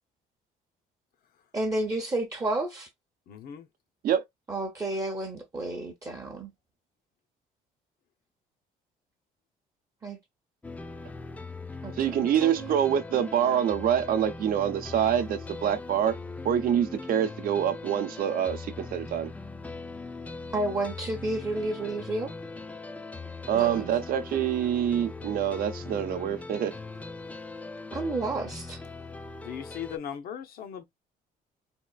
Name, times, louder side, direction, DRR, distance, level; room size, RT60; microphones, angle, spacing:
voice 1, 1.5-2.9 4.5-6.5 10.0-10.2 11.8-12.7 20.5-22.3 23.5-23.9 27.9-28.8, right 2 dB, 20° right, 0.7 m, -31 dB
voice 2, 3.3-3.7 29.4-30.8, left 9 dB, 60° left, 0.7 m, -38 dB
sound 1, 10.6-30.0, left 3 dB, 10° left, 0.3 m, -40 dB
voice 3, 12.0-16.2 16.4-19.3 23.5-26.7, right 9 dB, 60° right, 0.6 m, -26 dB
3.6 x 2.4 x 2.3 m
cardioid pair, 110°, 17 cm